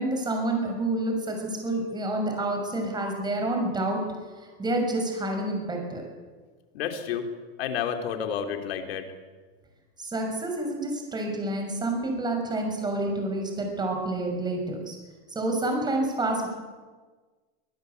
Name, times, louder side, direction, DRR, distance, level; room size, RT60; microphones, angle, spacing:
voice 1, 0.0-4.1 4.4-6.0 10.0-15.0 15.3-16.5, right 2 dB, 15° right, 3 dB, 6.3 m, -28 dB
voice 2, 6.7-7.3 7.6-9.1, left 8 dB, 75° left, 6 dB, 3.6 m, -30 dB
24.0 x 19.5 x 8.3 m, 1.4 s
supercardioid pair, 145°, 30 cm